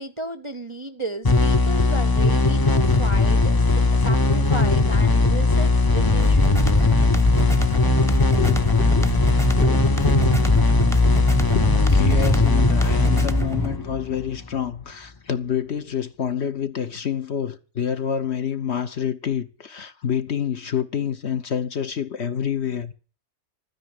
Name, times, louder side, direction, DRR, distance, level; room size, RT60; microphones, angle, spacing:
voice 1, 0.0-6.9, right 1 dB, 30° right, 0.6 m, -34 dB
sound 1, 1.2-14.6, left 3 dB, 30° left, 0.4 m, -19 dB
sound 2, 6.2-13.8, right 1 dB, ahead, 0.8 m, -26 dB
voice 2, 8.4-9.1 9.5-9.8 10.1-10.4 11.5-22.9, left 8 dB, 50° left, 1.2 m, -28 dB
13.0 x 9.8 x 9.4 m
omnidirectional pair, 1.5 m